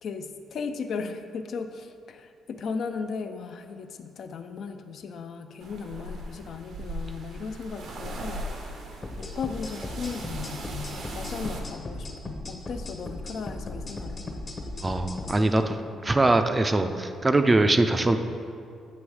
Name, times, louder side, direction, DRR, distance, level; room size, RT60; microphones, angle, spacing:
voice 1, 0.0-8.9 9.2-14.3, left 5 dB, 65° left, 7 dB, 0.3 m, -36 dB
sound 1, 5.6-11.6, right 1 dB, 70° right, 0.7 m, -38 dB
sound 2, 9.0-15.4, left 2 dB, 30° left, 0.7 m, -37 dB
voice 2, 14.8-15.8 16.0-18.2, right 2 dB, 20° right, 8 dB, 0.4 m, -22 dB
7.7 x 3.1 x 4.7 m, 2.3 s
cardioid pair, 90°, 0 cm